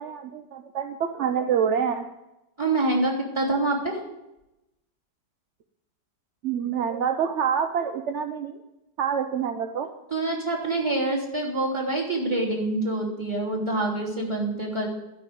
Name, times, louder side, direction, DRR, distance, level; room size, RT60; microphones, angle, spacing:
voice 1, 0.0-2.0 6.4-8.6 9.0-9.9, right 7 dB, 55° right, 6 dB, 0.8 m, -26 dB
voice 2, 2.6-4.0 10.1-14.9, right 2 dB, 15° right, -1 dB, 3.1 m, -26 dB
12.5 x 6.1 x 9.2 m, 0.93 s
omnidirectional pair, 1.8 m